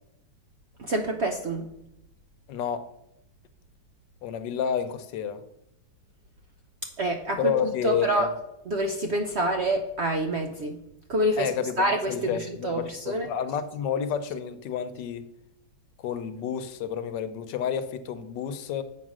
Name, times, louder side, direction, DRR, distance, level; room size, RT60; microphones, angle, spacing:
voice 1, 0.8-1.7 6.8-8.3 8.7-10.8 11.1-11.5 11.8-13.3, right 1 dB, 65° right, 5 dB, 0.7 m, -27 dB
voice 2, 2.5-2.9 4.2-5.4 7.4-8.3 11.4-15.3 16.0-18.8, left 8 dB, 85° left, 11 dB, 1.4 m, -30 dB
7.7 x 5.0 x 6.1 m, 0.84 s
omnidirectional pair, 1.9 m